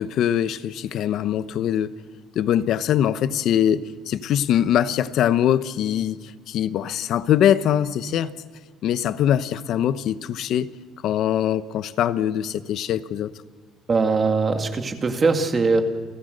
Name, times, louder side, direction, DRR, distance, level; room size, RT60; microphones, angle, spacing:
voice 1, 0.0-2.0 2.3-6.2 6.5-8.3 8.8-10.7 11.0-13.3, left 10 dB, 55° left, 0.8 m, -22 dB
voice 2, 13.9-15.8, right 4 dB, 25° right, 2.0 m, -21 dB
29.0 x 15.0 x 6.6 m
cardioid pair, 150°, 0 cm